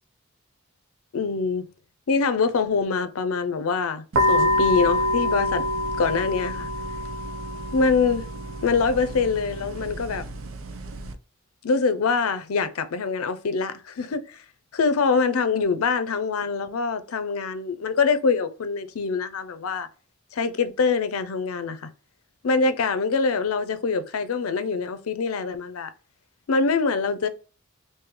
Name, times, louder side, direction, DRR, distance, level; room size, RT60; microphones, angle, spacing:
voice 1, 1.1-1.7 2.1-5.6 6.0-6.7 7.7-8.3 8.6-10.3 11.6-14.4 14.7-19.9 20.3-21.9 22.4-25.9 26.5-27.3, left 4 dB, 85° left, 0.5 m, -24 dB
sound 1, 4.1-11.1, left 1 dB, 75° right, 0.5 m, -27 dB
3.7 x 2.6 x 3.0 m
head